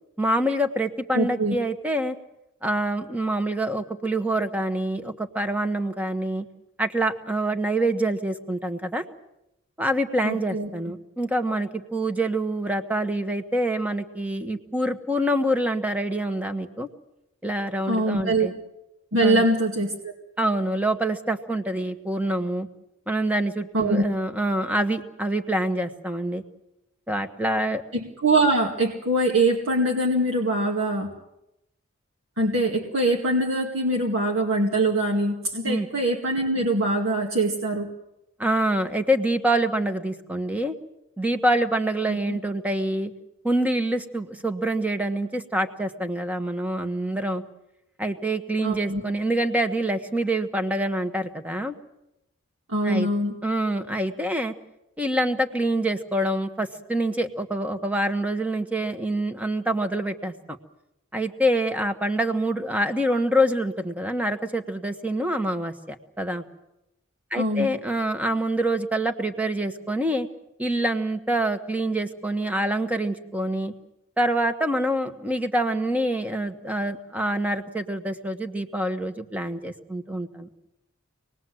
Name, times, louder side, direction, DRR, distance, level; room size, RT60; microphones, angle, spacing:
voice 1, 0.2-2.2 2.6-6.5 6.8-9.0 9.8-16.9 17.4-18.5 19.2-19.4 20.4-22.7 23.1-26.4 27.1-27.8 35.6-35.9 38.4-40.7 41.2-43.1 43.4-47.4 48.0-51.7 52.8-53.1 53.4-54.5 55.0-60.6 61.1-66.4 67.3-70.3 70.6-73.7 74.2-80.5, right 1 dB, 5° right, 7 dB, 1.2 m, -26 dB
voice 2, 1.1-1.6 10.2-10.7 17.9-18.5 19.1-20.1 23.7-24.0 27.9-31.1 32.4-37.9 42.1-42.4 48.6-49.0 52.7-53.4 67.4-67.7, right 1 dB, 75° right, -1 dB, 2.3 m, -23 dB
26.0 x 20.0 x 7.7 m, 0.87 s
head